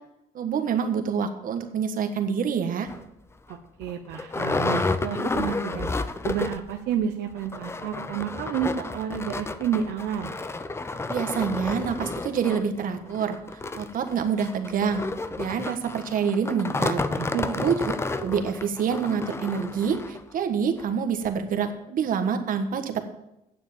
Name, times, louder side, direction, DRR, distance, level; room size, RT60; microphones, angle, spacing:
voice 1, 0.3-2.9 11.1-13.4 13.7-15.0 15.4-17.0 17.4-17.9 18.2-23.0, right 7 dB, 55° right, 7 dB, 1.5 m, -27 dB
sound 1, 2.9-3.0 3.5-3.6 3.8-6.8 7.0-7.1 7.4-20.2 20.8-20.9 21.3-21.4, left 3 dB, 15° left, 0.6 m, -31 dB
voice 2, 3.5-5.9 6.2-10.4 17.2-17.6, right 9 dB, 80° right, 5 dB, 0.9 m, -30 dB
9.4 x 7.2 x 7.2 m, 0.88 s
cardioid pair, 110°, 17 cm